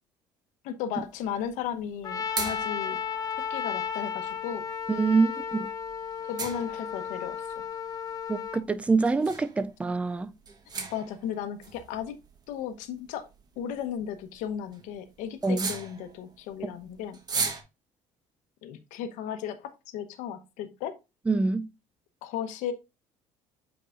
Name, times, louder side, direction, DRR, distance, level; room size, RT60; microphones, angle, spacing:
voice 1, 0.6-3.0 3.5-4.7 6.2-7.7 10.9-12.1 12.5-13.2 13.6-17.2 18.6-20.9 22.2-22.7, left 9 dB, 80° left, 1.0 m, -35 dB
sound 1, 1.0-17.6, right 4 dB, 30° right, 1.1 m, -40 dB
Trumpet, 2.0-8.6, left 7 dB, 30° left, 0.6 m, -34 dB
voice 2, 5.0-5.7 8.3-10.3 15.4-15.7 21.3-21.7, right 3 dB, 10° right, 0.4 m, -25 dB
7.9 x 4.7 x 2.5 m
cardioid pair, 135°, 13 cm